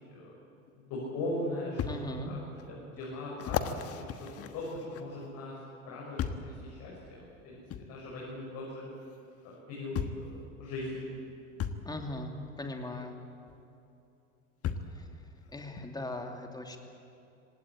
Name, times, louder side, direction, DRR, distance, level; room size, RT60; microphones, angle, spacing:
sound 1, 0.7-0.8 1.8-2.0 2.6-2.7 3.4-5.3 6.2-6.5 7.7-7.9 9.1-9.2 9.9-10.3 11.6-11.8 13.5-13.6 14.6-15.0 15.8-15.9, left 8 dB, 35° left, 1.4 m, -35 dB
voice 1, 0.8-2.4 2.7-3.6 3.9-4.1 4.4-5.6 5.8-7.6 7.9-8.8 9.4-11.0 14.8-15.0, left 1 dB, 50° left, -5 dB, 7.0 m, -39 dB
voice 2, 1.8-2.3 11.8-12.3 12.6-13.2 14.9-15.0 15.5-16.8, left 2 dB, 10° left, 3 dB, 2.7 m, -39 dB
25.5 x 18.0 x 8.7 m, 2.8 s
figure-of-eight pair, 75°, 41 cm